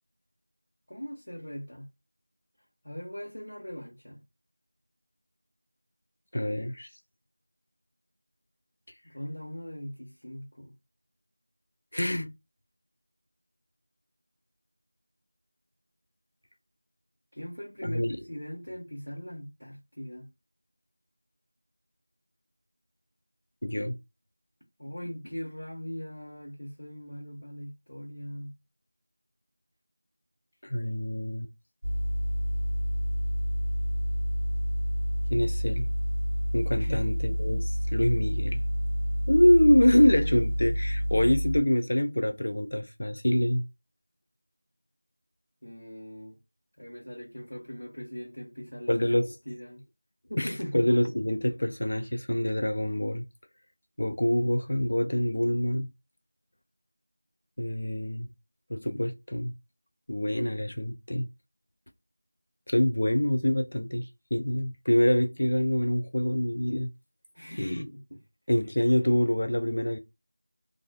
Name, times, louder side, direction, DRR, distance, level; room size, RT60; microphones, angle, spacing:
voice 1, 0.9-1.9 2.8-4.2 9.0-10.7 17.3-20.3 24.8-28.5 36.8-37.0 45.6-46.4 46.8-49.0 49.5-49.8 50.2-50.9 67.3-68.2, equal, 65° left, 1.0 m, -40 dB
voice 2, 6.3-6.9 11.9-12.3 17.8-18.2 23.6-24.0 30.6-31.5 35.3-35.9 36.5-38.6 39.3-43.6 48.9-49.3 50.4-53.2 54.0-55.9 57.6-58.3 58.7-59.5 60.1-61.3 62.7-66.9 67.6-67.9 68.5-70.0, left 1 dB, 30° left, 0.3 m, -25 dB
sound 1, 31.8-41.6, equal, 50° right, 0.4 m, -29 dB
2.4 x 2.3 x 2.3 m
figure-of-eight pair, 180°, 0 cm